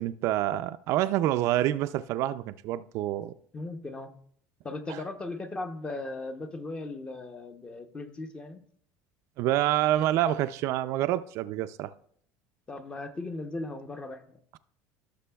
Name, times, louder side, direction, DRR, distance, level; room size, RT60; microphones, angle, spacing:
voice 1, 0.0-3.3 4.9-5.0 9.4-11.9, right 13 dB, 55° right, 0.3 m, -27 dB
voice 2, 3.5-4.1 4.6-8.6 12.7-14.4, left 2 dB, 15° left, 0.7 m, -37 dB
16.5 x 6.7 x 2.3 m
cardioid pair, 160°, 6 cm